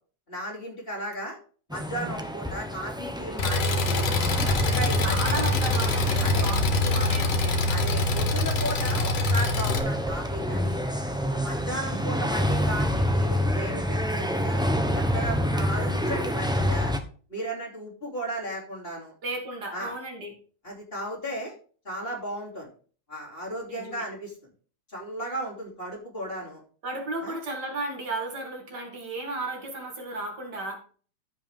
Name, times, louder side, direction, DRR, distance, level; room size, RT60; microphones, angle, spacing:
voice 1, 0.3-1.4 1.7-4.1 4.4-5.5 6.2-6.5 7.7-10.9 11.3-14.6 14.9-16.9 17.3-19.1 19.7-19.9 20.6-21.5 21.8-22.7 23.1-24.4 24.9-26.6 27.2-27.4, right 1 dB, 30° left, -3 dB, 3.1 m, -35 dB
sound 1, 1.7-17.0, equal, 5° right, 0.3 m, -28 dB
Engine, 3.4-9.8, left 2 dB, 85° left, 1.9 m, -25 dB
voice 2, 5.0-7.7 11.7-12.1 15.5-15.9 19.2-20.3 23.7-24.0 26.8-30.8, right 2 dB, 70° right, 1 dB, 2.8 m, -34 dB
14.0 x 5.4 x 3.5 m, 0.41 s
omnidirectional pair, 1.9 m